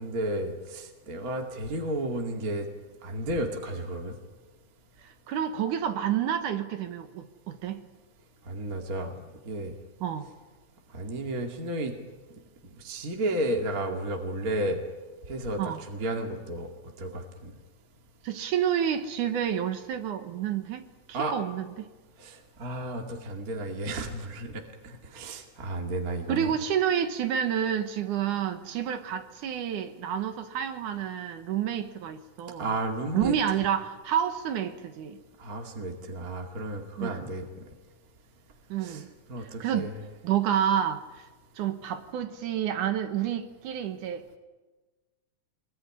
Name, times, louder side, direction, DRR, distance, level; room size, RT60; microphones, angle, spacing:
voice 1, 0.0-2.7 3.0-4.2 8.5-9.1 9.4-9.7 10.9-12.0 12.8-14.8 15.3-16.7 17.0-17.5 21.1-21.4 22.2-26.5 32.6-33.3 35.4-37.4 38.8-39.0 39.3-39.9, right 1 dB, 30° right, 2.3 m, -32 dB
voice 2, 5.0-7.8 10.0-10.3 15.6-15.8 18.2-21.9 26.3-32.7 33.1-35.2 37.0-37.2 38.7-39.1 39.4-39.9 40.2-41.3 41.6-44.4, right 9 dB, 80° right, 2.8 m, -29 dB
25.5 x 21.0 x 9.9 m
omnidirectional pair, 3.5 m